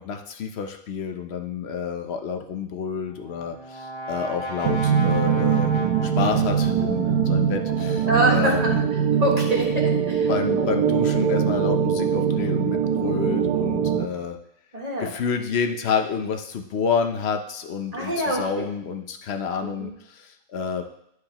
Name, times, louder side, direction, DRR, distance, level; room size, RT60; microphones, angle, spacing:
voice 1, 0.0-5.7 6.0-8.8 10.3-14.4 15.0-20.8, left 6 dB, 55° left, 5 dB, 0.8 m, -29 dB
Brass instrument, 2.9-7.1, equal, 25° left, 0.6 m, -35 dB
Gentle Choir Of Angels, 4.6-14.1, right 7 dB, 85° right, 1.1 m, -22 dB
voice 2, 8.1-8.8 9.2-10.7 14.7-15.1 17.9-18.7 19.6-19.9, right 1 dB, 30° right, -2 dB, 1.5 m, -25 dB
12.0 x 4.8 x 2.9 m, 0.78 s
omnidirectional pair, 1.5 m